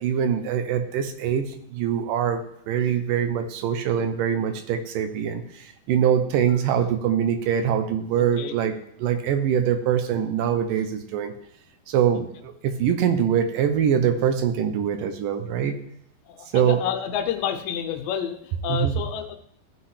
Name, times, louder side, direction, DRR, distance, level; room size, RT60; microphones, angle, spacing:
voice 1, 0.0-1.4 1.7-2.4 2.7-8.7 9.0-11.3 11.9-15.7 16.5-16.8 18.7-18.9, right 8 dB, 75° right, 8 dB, 2.2 m, -23 dB
voice 2, 8.1-8.5 12.1-12.2 16.3-19.3, left 9 dB, 75° left, 7 dB, 2.4 m, -29 dB
15.0 x 5.7 x 3.3 m, 0.70 s
omnidirectional pair, 4.2 m